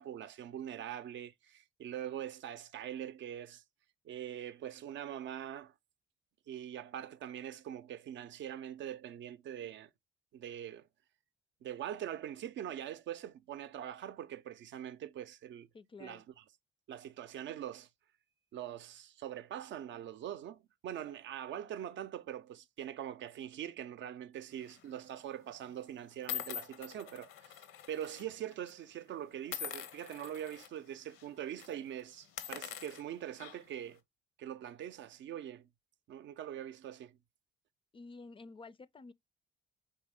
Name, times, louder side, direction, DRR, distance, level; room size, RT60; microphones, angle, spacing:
voice 1, 0.0-3.6 4.0-5.7 6.5-9.9 10.3-10.9 11.6-15.7 16.0-16.4 16.9-17.9 18.5-34.0 34.4-35.7 36.1-37.2, right 10 dB, 70° right, 0.5 m, -43 dB
voice 2, 15.7-16.2 37.9-39.1, left 3 dB, 25° left, 0.3 m, -51 dB
sound 1, 24.6-24.9 25.6-25.7 26.3-28.2 28.5-28.7 29.5-30.7 31.1-31.3 31.6-31.7 32.2-33.8, left 10 dB, 85° left, 0.7 m, -44 dB
4.4 x 3.2 x 3.4 m
cardioid pair, 90°, 20 cm